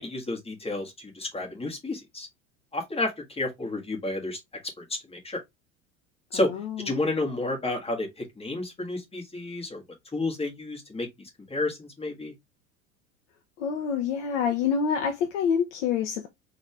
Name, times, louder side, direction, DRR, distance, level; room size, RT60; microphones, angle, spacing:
voice 1, 0.0-2.3 2.7-4.4 4.8-5.4 6.3-6.5 6.8-9.8 10.1-12.3, left 2 dB, 15° left, 1.6 m, -31 dB
voice 2, 6.3-6.9 13.6-16.3, left 7 dB, 60° left, 0.9 m, -27 dB
4.0 x 2.8 x 3.4 m
figure-of-eight pair, 75°, 40 cm